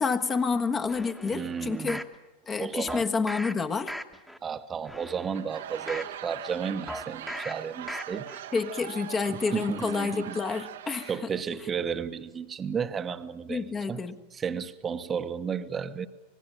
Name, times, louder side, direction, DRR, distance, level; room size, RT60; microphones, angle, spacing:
voice 1, 0.0-2.0 2.5-3.9 8.5-11.1 13.5-14.2, left 4 dB, 20° left, 1.3 m, -29 dB
sound 1, 0.9-2.1 2.9-3.5 3.9-4.4 4.8-6.1 6.9-7.5 7.9-8.4 8.8-8.9, equal, ahead, 1.4 m, -39 dB
voice 2, 1.2-2.0 2.6-3.0 4.4-8.3 9.5-10.4 11.1-14.0 14.3-16.1, right 6 dB, 20° right, 1.1 m, -33 dB
Laughter / Crowd, 5.2-11.4, right 12 dB, 60° right, 1.1 m, -41 dB
25.5 x 20.0 x 9.0 m
figure-of-eight pair, 90°, 0 cm